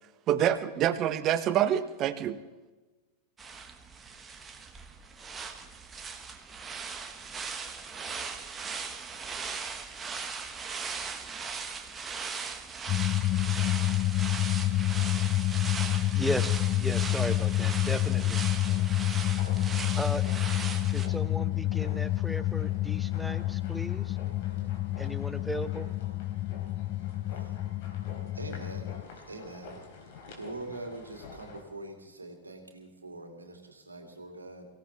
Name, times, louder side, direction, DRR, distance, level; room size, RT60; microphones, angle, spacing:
voice 1, 0.3-2.4, right 10 dB, 35° right, 12 dB, 1.1 m, -26 dB
sound 1, 3.4-21.1, right 5 dB, 20° right, 1.6 m, -39 dB
sound 2, 12.9-29.0, left 15 dB, 35° left, 0.5 m, -29 dB
voice 2, 16.1-18.4 19.9-20.2 20.9-24.2 25.0-25.9, equal, ahead, 11 dB, 0.9 m, -36 dB
sound 3, 17.4-31.6, left 3 dB, 50° left, 3.7 m, -49 dB
voice 3, 28.3-29.8 30.4-34.7, right 2 dB, 80° right, 3 dB, 2.8 m, -43 dB
24.0 x 16.5 x 3.5 m, 1.2 s
figure-of-eight pair, 90°, 0 cm